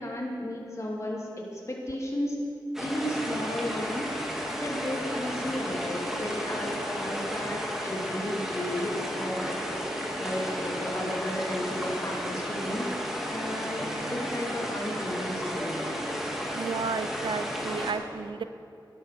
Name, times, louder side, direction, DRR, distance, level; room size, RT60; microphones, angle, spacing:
voice 1, 0.0-2.4 2.8-4.2 4.5-9.8 10.2-12.9 13.3-15.9, left 1 dB, 40° left, -2 dB, 2.9 m, -34 dB
sound 1, 2.7-17.9, equal, 5° right, 2.2 m, -33 dB
voice 2, 16.5-18.4, right 5 dB, 85° right, 12 dB, 0.5 m, -32 dB
12.0 x 11.0 x 6.9 m, 2.5 s
wide cardioid pair, 75°, 8 cm